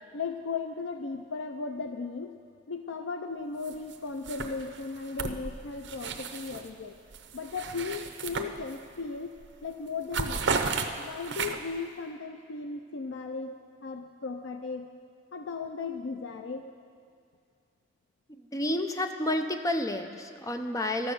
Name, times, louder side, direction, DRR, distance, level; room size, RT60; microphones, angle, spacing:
voice 1, 0.1-2.4 2.7-7.0 7.3-10.4 11.0-14.9 15.3-16.7, left 4 dB, 80° left, 7 dB, 0.5 m, -36 dB
sound 1, 3.6-4.0 4.2-6.7 7.1-9.0 9.4-9.6 9.9-11.8, right 4 dB, 65° right, 0.7 m, -34 dB
voice 2, 18.4-21.1, left 1 dB, 20° left, 6 dB, 0.6 m, -30 dB
12.5 x 7.9 x 6.7 m, 2.3 s
head